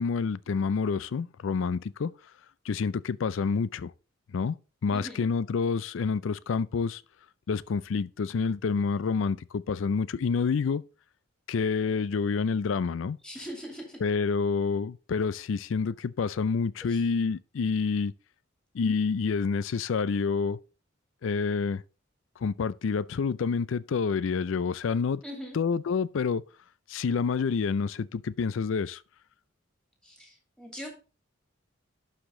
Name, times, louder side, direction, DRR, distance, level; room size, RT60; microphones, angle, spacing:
voice 1, 0.0-2.1 2.7-3.9 4.3-4.6 4.8-7.0 7.5-10.8 11.5-13.2 14.0-18.1 18.7-20.6 21.2-21.8 22.4-25.2 25.5-26.4 26.9-29.0, left 5 dB, 75° left, 0.4 m, -28 dB
voice 2, 4.9-5.3 13.2-14.0 16.8-17.1 25.2-25.6 30.0-30.9, equal, 5° left, 2.7 m, -41 dB
11.5 x 5.0 x 3.7 m
head